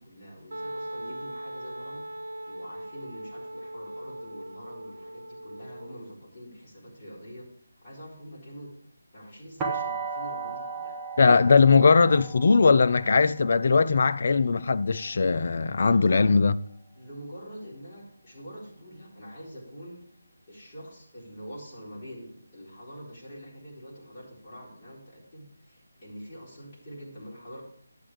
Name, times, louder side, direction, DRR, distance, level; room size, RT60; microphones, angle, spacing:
voice 1, 0.0-2.0 2.5-7.5 7.8-8.7 9.1-11.0 15.8-16.4 17.0-20.0 20.5-27.6, equal, 25° left, 4.2 m, -45 dB
Wind instrument woodwind instrument, 0.5-6.1, right 1 dB, 60° right, 0.8 m, -39 dB
sound 1, 9.6-15.4, right 4 dB, 10° right, 1.4 m, -36 dB
voice 2, 11.2-16.5, left 4 dB, 45° left, 0.4 m, -20 dB
11.5 x 8.6 x 3.2 m
figure-of-eight pair, 155°, 0 cm